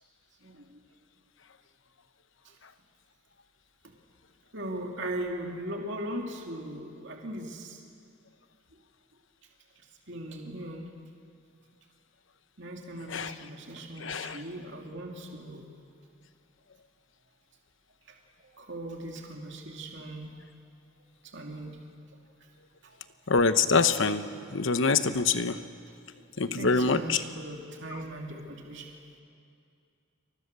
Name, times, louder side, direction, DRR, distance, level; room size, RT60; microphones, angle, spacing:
voice 1, 0.4-0.8 4.5-7.8 10.1-10.9 12.6-15.6 18.6-20.3 21.3-21.7 26.4-28.9, right 1 dB, 55° right, 0 dB, 2.9 m, -38 dB
voice 2, 14.0-14.4 23.3-24.3 24.5-25.6 26.4-27.2, left 4 dB, 65° left, 10 dB, 1.0 m, -25 dB
28.5 x 24.5 x 6.9 m, 2.4 s
head